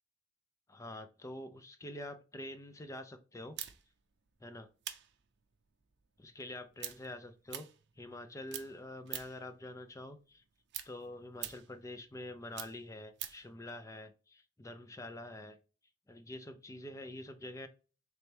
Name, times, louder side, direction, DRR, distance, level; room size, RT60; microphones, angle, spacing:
voice 1, 0.7-3.6 4.4-4.7 6.2-7.7 8.0-10.4 10.8-15.6 16.1-17.7, left 1 dB, 15° left, 9 dB, 0.4 m, -46 dB
sound 1, 3.6-8.2 8.5-9.5 9.9-13.5, right 12 dB, 55° right, 0.5 m, -45 dB
4.0 x 3.3 x 3.2 m, 0.34 s
head